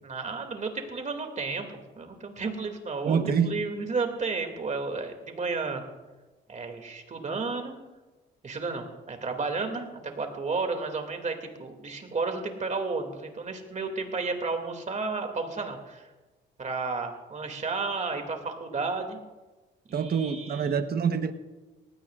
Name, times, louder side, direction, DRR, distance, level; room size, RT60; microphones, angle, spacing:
voice 1, 0.0-3.2 3.4-5.8 6.5-7.7 8.4-16.1 16.6-19.2 19.9-20.8, right 4 dB, 35° right, 5 dB, 2.5 m, -32 dB
voice 2, 3.0-3.6 19.9-21.3, right 6 dB, 50° right, 9 dB, 1.1 m, -26 dB
19.0 x 16.5 x 2.5 m, 1.2 s
cardioid pair, 90°, 20 cm